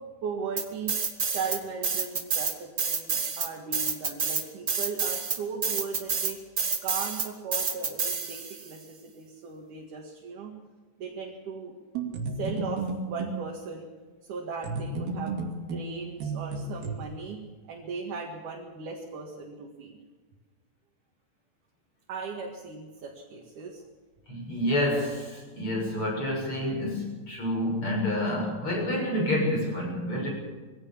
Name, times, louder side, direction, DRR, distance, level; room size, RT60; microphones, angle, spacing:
voice 1, 0.2-0.9 1.3-6.4 6.8-10.5 11.0-11.7 12.4-13.9 14.3-17.4 17.7-20.0 22.1-23.8, right 5 dB, 65° right, 0 dB, 3.4 m, -37 dB
sound 1, 0.6-1.6 1.8-8.7, right 5 dB, 50° right, 0.9 m, -28 dB
sound 2, 12.0-13.4 14.6-17.0, right 3 dB, 85° right, 4.4 m, -33 dB
voice 2, 24.3-30.3, left 1 dB, 35° left, 0 dB, 7.6 m, -28 dB
22.0 x 16.5 x 7.2 m, 1.4 s
omnidirectional pair, 4.1 m